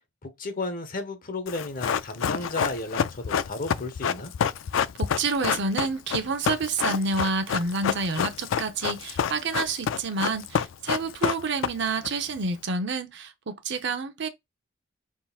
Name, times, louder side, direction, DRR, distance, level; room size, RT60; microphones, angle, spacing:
voice 1, 0.2-4.3, left 2 dB, 45° left, 0.9 m, -33 dB
Run, 1.5-12.1 12.4-12.5, left 7 dB, 80° left, 0.4 m, -28 dB
voice 2, 5.0-14.3, right 4 dB, 65° right, 0.7 m, -29 dB
5.4 x 3.8 x 2.4 m
head